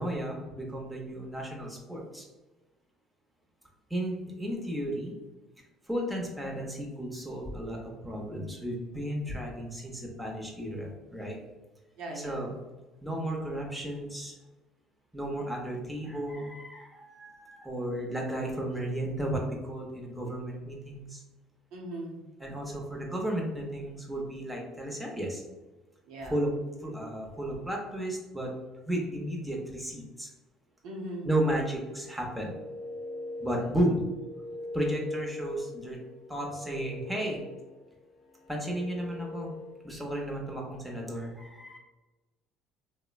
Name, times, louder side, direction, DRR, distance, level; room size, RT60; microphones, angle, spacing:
voice 1, 0.0-2.2 3.9-5.1 5.9-11.4 12.2-12.6 13.0-14.3 15.1-21.2 22.4-25.4 26.3-28.5 28.9-30.3 31.2-32.5 33.4-34.0 34.7-36.0 36.3-37.4 38.5-39.5 39.8-41.8, right 1 dB, 5° right, -1 dB, 0.7 m, -33 dB
voice 2, 12.0-12.5 21.7-22.2 26.1-26.3 30.8-31.3, right 1 dB, 75° right, -1 dB, 0.7 m, -39 dB
sound 1, 32.1-39.9, left 2 dB, 65° left, 0.4 m, -42 dB
3.0 x 2.0 x 2.3 m, 1.1 s
supercardioid pair, 85°, 0 cm